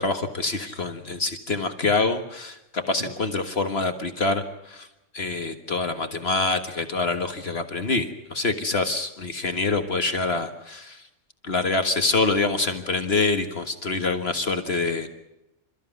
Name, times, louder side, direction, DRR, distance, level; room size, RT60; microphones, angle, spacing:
voice 1, 0.0-4.9 5.1-11.0 11.4-15.1, left 3 dB, 55° left, 7 dB, 1.8 m, -26 dB
28.5 x 14.0 x 9.4 m, 0.94 s
omnidirectional pair, 1.3 m